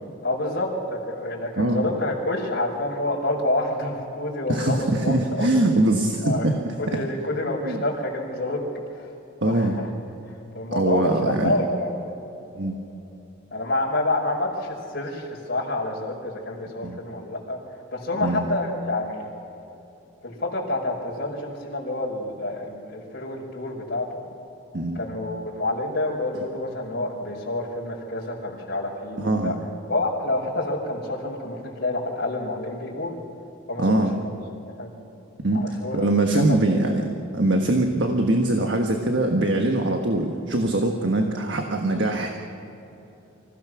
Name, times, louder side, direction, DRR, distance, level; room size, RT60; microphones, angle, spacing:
voice 1, 0.2-5.5 6.2-6.5 6.8-8.6 9.0-9.1 9.4-9.9 10.5-12.1 13.5-17.6 17.9-19.2 20.2-24.1 25.0-29.6 29.9-33.2 33.7-34.3 34.6-34.9 35.5-36.0 36.4-36.6, left 2 dB, 50° left, -4 dB, 5.2 m, -28 dB
voice 2, 4.5-7.0 7.6-7.8 9.4-9.8 10.7-11.5 12.6-12.7 16.8-17.0 18.2-18.5 24.7-25.0 29.2-29.5 33.8-34.1 35.4-35.6 35.9-37.0 37.3-42.3, right 2 dB, 60° right, 3 dB, 1.4 m, -22 dB
26.0 x 16.5 x 6.3 m, 3.0 s
head